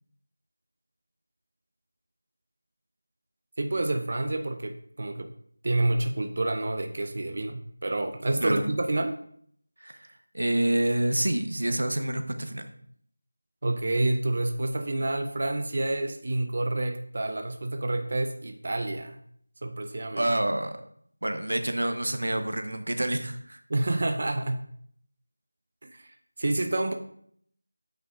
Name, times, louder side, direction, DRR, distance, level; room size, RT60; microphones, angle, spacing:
voice 1, 3.6-5.3 5.6-9.2 13.6-19.2 19.6-20.3 23.7-24.6 25.8-26.9, right 2 dB, 45° right, 6 dB, 0.6 m, -28 dB
voice 2, 10.3-12.7 20.2-20.8 21.2-23.6, right 1 dB, 75° right, 7 dB, 1.0 m, -27 dB
8.4 x 5.7 x 2.5 m, 0.64 s
figure-of-eight pair, 175°, 0 cm